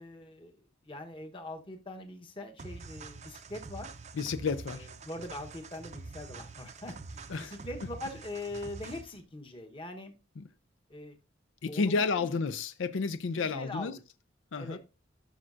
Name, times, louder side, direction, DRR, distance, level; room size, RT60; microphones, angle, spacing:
voice 1, 0.0-3.9 4.7-10.1 10.9-11.2 11.7-12.3 13.3-13.9 14.6-14.8, left 1 dB, 25° left, 1.0 m, -42 dB
sound 1, 2.6-9.2, right 4 dB, 35° right, 0.5 m, -46 dB
voice 2, 4.2-4.9 7.3-7.5 10.4-10.5 11.6-13.9 14.5-14.8, left 4 dB, 85° left, 0.5 m, -31 dB
12.0 x 6.3 x 2.5 m
head